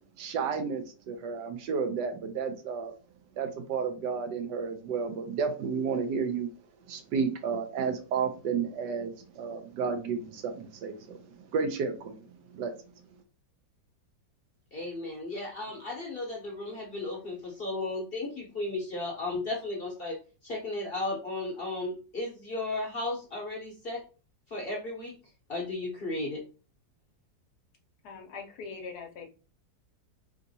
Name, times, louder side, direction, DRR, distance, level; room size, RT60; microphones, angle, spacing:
voice 1, 0.2-2.9 3.4-6.5 6.9-12.2 12.5-12.7, right 5 dB, 75° right, 6 dB, 1.3 m, -32 dB
voice 2, 14.7-20.2 20.4-24.0 24.5-25.1 25.5-26.4, left 2 dB, 45° left, -1 dB, 0.8 m, -34 dB
voice 3, 28.0-29.3, left 5 dB, 70° left, 3 dB, 1.2 m, -42 dB
3.9 x 3.6 x 2.7 m, 0.35 s
omnidirectional pair, 2.0 m